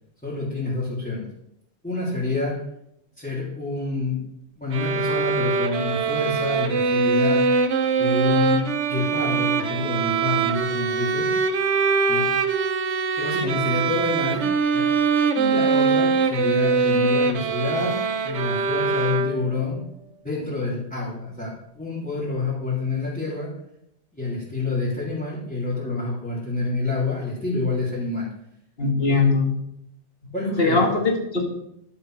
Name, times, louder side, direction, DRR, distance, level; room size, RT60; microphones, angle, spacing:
voice 1, 0.2-1.3 1.8-2.6 3.2-4.2 4.6-7.4 7.9-11.3 12.1-12.3 13.2-14.9 15.3-19.8 20.2-23.5 24.1-28.3 29.1-29.3 30.3-30.9, left 3 dB, 5° left, -10 dB, 3.3 m, -28 dB
sound 1, 4.7-19.7, right 5 dB, 80° right, 1.1 m, -22 dB
voice 2, 28.8-29.5 30.6-31.4, left 3 dB, 60° left, 1 dB, 2.3 m, -20 dB
12.0 x 5.6 x 6.3 m, 0.78 s
omnidirectional pair, 1.2 m